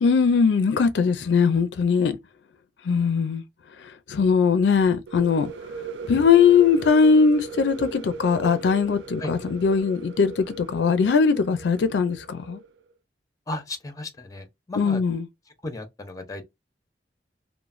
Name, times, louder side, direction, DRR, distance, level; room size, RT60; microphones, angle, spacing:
voice 1, 0.0-2.2 2.8-3.4 4.1-5.5 6.1-12.6 14.8-15.2, left 5 dB, 70° left, 0.4 m, -20 dB
sound 1, 5.1-12.7, right 4 dB, 90° right, 0.4 m, -38 dB
voice 2, 13.5-15.0 15.6-16.5, left 2 dB, 20° left, 0.6 m, -35 dB
3.0 x 2.0 x 2.3 m
head